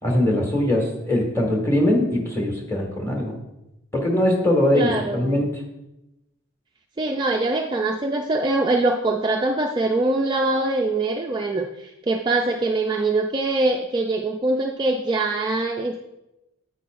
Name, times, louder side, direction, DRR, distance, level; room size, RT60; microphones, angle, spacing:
voice 1, 0.0-3.3 3.9-5.6, left 1 dB, 15° left, 0 dB, 1.6 m, -21 dB
voice 2, 4.7-5.5 7.0-16.0, right 2 dB, 20° right, 2 dB, 0.3 m, -23 dB
9.6 x 8.4 x 2.5 m, 0.93 s
head